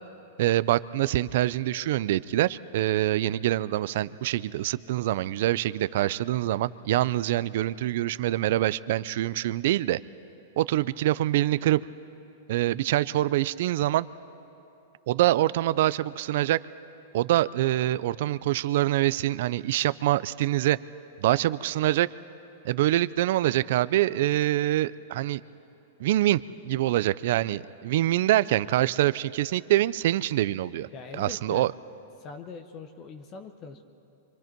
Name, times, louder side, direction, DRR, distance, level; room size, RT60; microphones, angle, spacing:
voice 1, 0.4-10.0 10.6-11.8 12.5-14.1 15.1-16.6 17.1-20.8 21.2-22.1 22.6-25.4 26.0-30.9 31.1-31.7, right 14 dB, 60° right, 17 dB, 0.5 m, -25 dB
voice 2, 30.9-31.7 32.2-33.8, left 4 dB, 30° left, 8 dB, 0.9 m, -42 dB
25.5 x 25.0 x 4.6 m, 2.8 s
supercardioid pair, 150°, 0 cm